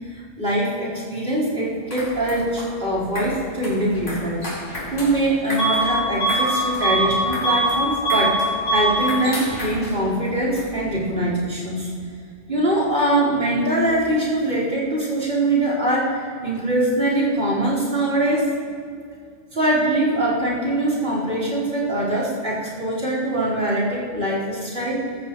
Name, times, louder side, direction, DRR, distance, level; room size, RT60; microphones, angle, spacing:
voice 1, 0.1-4.4 4.9-8.4 8.7-11.9 12.5-18.5 19.5-25.0, right 1 dB, 50° right, -7 dB, 4.9 m, -22 dB
sound 1, 1.7-11.1, left 1 dB, 80° left, 4.9 m, -35 dB
Bus / Alarm, 5.6-5.9 6.2-7.8 8.0-8.4 8.6-9.0, right 3 dB, 60° left, 4.7 m, -21 dB
22.5 x 14.0 x 3.2 m, 2.2 s
omnidirectional pair, 1.2 m